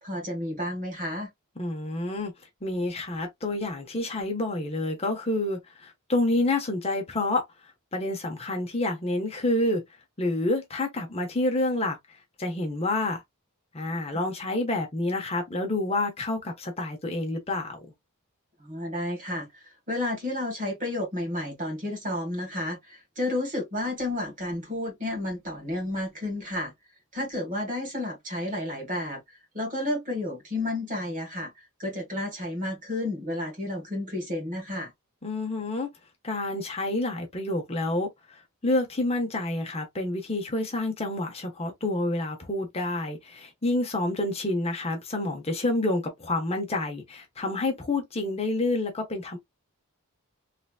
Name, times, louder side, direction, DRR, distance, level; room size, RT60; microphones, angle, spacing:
voice 1, 0.0-1.3 18.6-26.7 27.1-34.9, left 1 dB, 35° right, 1.7 m, -31 dB
voice 2, 1.6-2.3 2.6-7.4 7.9-9.8 10.2-13.2 13.7-17.8 35.2-35.9 36.2-49.4, left 2 dB, 25° left, 0.7 m, -28 dB
3.2 x 2.8 x 2.3 m
head